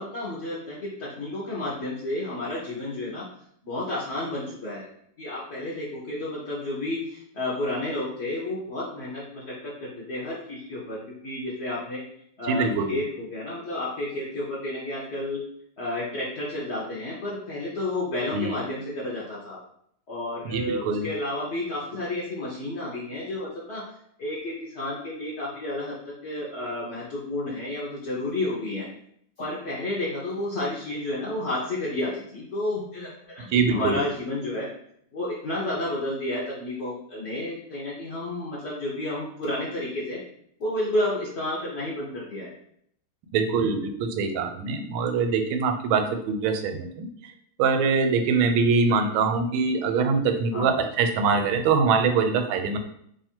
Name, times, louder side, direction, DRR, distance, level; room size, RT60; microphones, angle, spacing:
voice 1, 0.0-3.2 3.6-4.9 5.2-12.0 12.4-15.4 15.8-19.6 20.1-23.8 24.2-26.0 26.2-28.9 29.4-34.7 35.1-40.2 40.6-42.5 50.5-50.7, left 1 dB, 65° left, -6 dB, 0.6 m, -31 dB
voice 2, 12.5-13.0 18.3-18.6 20.4-21.1 33.5-34.0 43.3-47.1 47.6-52.8, right 5 dB, 85° right, 5 dB, 1.4 m, -23 dB
3.1 x 2.4 x 4.3 m, 0.68 s
omnidirectional pair, 2.2 m